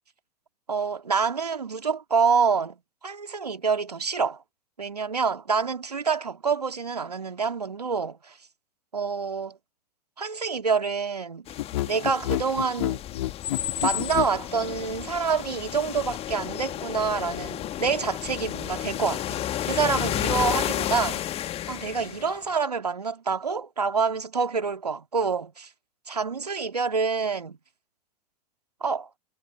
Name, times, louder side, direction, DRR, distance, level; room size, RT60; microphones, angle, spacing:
voice 1, 0.7-2.8 3.0-4.4 4.8-8.4 8.9-9.6 10.2-11.5 11.9-13.0 13.8-21.2 21.7-25.7 26.1-27.6 28.8-29.1, right 5 dB, 80° right, 2.4 m, -27 dB
sound 1, 11.5-22.3, left 12 dB, 30° left, 1.9 m, -32 dB
sound 2, 11.6-14.4, left 16 dB, 55° left, 2.3 m, -28 dB
figure-of-eight pair, 90°, 20 cm